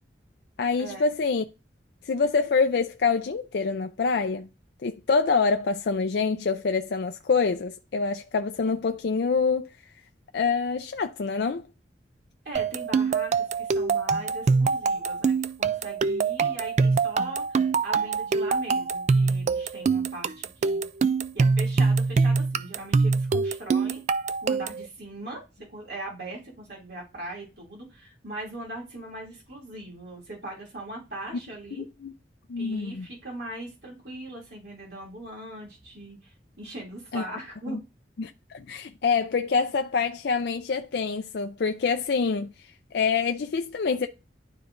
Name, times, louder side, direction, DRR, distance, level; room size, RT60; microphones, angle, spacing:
voice 1, 0.6-1.4 2.0-4.5 4.8-9.7 10.3-11.7 31.8-32.1 32.5-33.1 37.1-37.2 37.7-37.8 38.2-42.5 42.9-44.1, left 5 dB, 65° left, 0.4 m, -26 dB
voice 2, 12.4-20.8 21.3-24.0 24.4-25.4 25.7-31.8 32.6-37.8, right 1 dB, 65° right, 2.7 m, -40 dB
sound 1, 12.6-24.9, right 4 dB, 40° right, 0.3 m, -24 dB
11.5 x 4.0 x 2.6 m
head